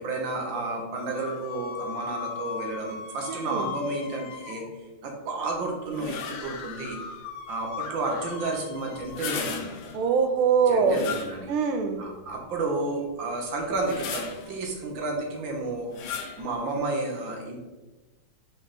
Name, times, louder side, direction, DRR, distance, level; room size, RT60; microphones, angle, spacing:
voice 1, 0.0-4.6 5.0-7.0 7.5-9.8 10.7-11.5 12.0-15.9 16.4-17.6, right 2 dB, 65° right, 1 dB, 1.8 m, -31 dB
sound 1, 1.0-4.7 6.2-10.0, left 7 dB, 85° left, 1.6 m, -39 dB
voice 2, 3.3-3.7 9.9-11.0 11.5-12.0, right 6 dB, 80° right, 7 dB, 1.6 m, -23 dB
sound 2, 5.9-6.6 9.0-10.0 10.8-11.7 12.3-12.4 13.6-14.6 15.9-16.5, left 6 dB, 70° left, 1.4 m, -36 dB
5.4 x 4.3 x 4.2 m, 1.1 s
omnidirectional pair, 2.4 m